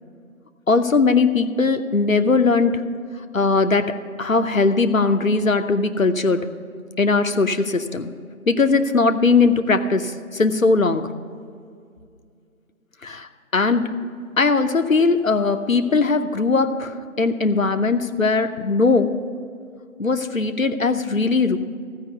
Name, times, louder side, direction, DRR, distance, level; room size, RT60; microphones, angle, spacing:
voice 1, 0.7-2.8 3.3-6.5 7.0-8.1 8.5-11.1 13.0-13.9 14.4-19.1 20.0-21.6, left 4 dB, 70° left, 8 dB, 0.8 m, -19 dB
15.0 x 5.0 x 8.0 m, 2.3 s
figure-of-eight pair, 180°, 42 cm